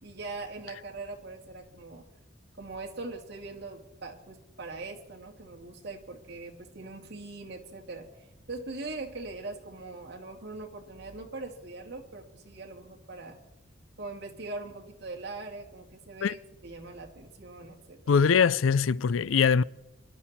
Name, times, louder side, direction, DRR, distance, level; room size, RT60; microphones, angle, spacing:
voice 1, 0.0-2.0 2.6-8.1 8.5-13.4 14.0-18.0, right 3 dB, 55° right, 2.3 m, -41 dB
voice 2, 18.1-19.6, left 6 dB, 85° left, 0.4 m, -22 dB
25.0 x 12.0 x 4.2 m
head